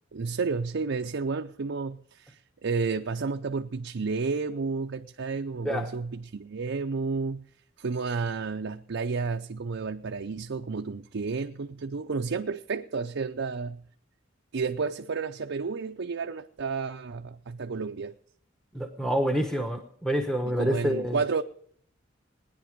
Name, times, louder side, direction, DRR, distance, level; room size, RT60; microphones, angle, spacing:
voice 1, 0.1-7.4 7.8-13.8 14.5-18.2 20.4-21.4, right 4 dB, 65° right, 0.5 m, -31 dB
voice 2, 18.7-21.2, equal, 5° left, 1.0 m, -27 dB
19.0 x 10.0 x 5.2 m
head